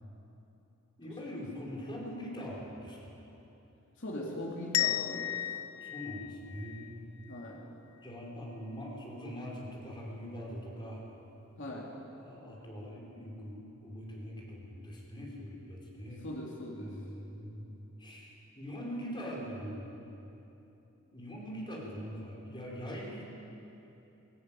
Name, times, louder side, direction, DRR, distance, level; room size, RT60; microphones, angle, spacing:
voice 1, 1.0-3.1 5.8-6.9 8.0-11.0 12.1-16.3 16.7-17.7 18.0-19.9 21.1-23.3, equal, 20° left, -3 dB, 5.2 m, -42 dB
voice 2, 4.0-5.4 7.3-7.7 11.6-11.9 16.2-17.0, left 1 dB, 60° left, -2 dB, 3.1 m, -40 dB
sound 1, 4.7-7.5, left 14 dB, 80° left, 0.5 m, -34 dB
23.5 x 16.5 x 9.3 m, 3.0 s
head